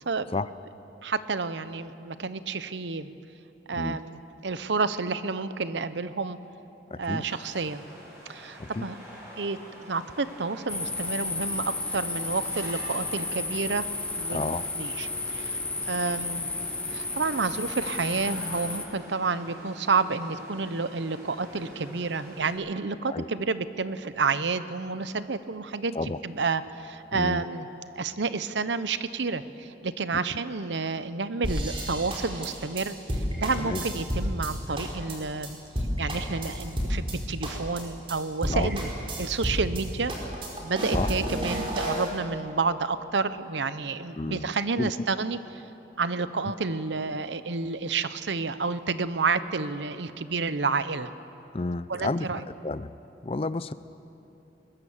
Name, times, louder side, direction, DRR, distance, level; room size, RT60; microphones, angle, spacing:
voice 1, 1.0-3.1 3.7-6.4 7.0-7.8 8.3-9.0 9.4-13.9 14.2-16.5 16.9-27.7 28.0-35.6 36.0-38.9 39.2-40.1 40.6-45.6 46.0-51.1 51.9-52.4, right 4 dB, 85° right, 13 dB, 0.9 m, -30 dB
voice 2, 6.9-7.3 8.6-8.9 14.3-14.6 23.0-23.3 25.9-26.2 27.1-27.4 30.1-30.4 33.6-33.8 38.5-38.7 40.9-41.1 44.2-44.5 44.8-44.9 51.5-52.9 53.2-53.7, left 3 dB, 30° left, 15 dB, 0.5 m, -31 dB
sound 1, 7.2-22.5, equal, 15° right, 6.9 m, -46 dB
sound 2, 10.7-18.8, left 3 dB, 5° left, 1.1 m, -33 dB
sound 3, 31.4-34.5 34.8-35.1 35.4-35.5 35.8-37.1 37.4-37.8 38.1-38.2 38.4-39.8 40.1-42.1, equal, 30° right, 4.4 m, -30 dB
21.5 x 21.0 x 7.3 m, 2.9 s
head